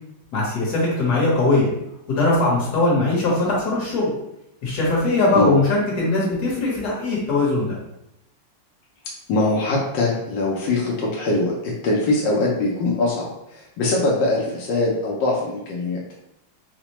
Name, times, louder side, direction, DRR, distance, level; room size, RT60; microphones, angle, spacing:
voice 1, 0.3-1.7 2.1-4.1 4.6-7.8, left 2 dB, 60° left, -5 dB, 1.6 m, -20 dB
voice 2, 9.3-16.0, left 2 dB, 85° left, -2 dB, 1.4 m, -22 dB
4.8 x 2.1 x 2.9 m, 0.84 s
omnidirectional pair, 2.0 m